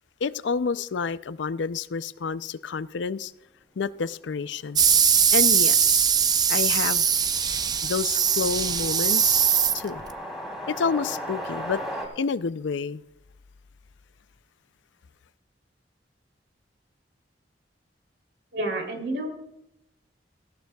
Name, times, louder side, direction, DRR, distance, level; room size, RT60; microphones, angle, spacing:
voice 1, 0.2-3.3 3.8-4.8 5.3-6.1 6.5-7.0 7.8-9.4 9.7-10.0 10.7-11.8 12.2-13.0, left 5 dB, 85° left, 0.5 m, -29 dB
sound 1, 4.6-4.7 4.9-5.0 5.3-12.1, equal, ahead, 2.9 m, -38 dB
sound 2, 4.8-10.1, right 7 dB, 20° right, 0.4 m, -21 dB
voice 2, 18.5-19.3, right 1 dB, 70° right, 3.1 m, -29 dB
18.0 x 15.0 x 2.3 m
head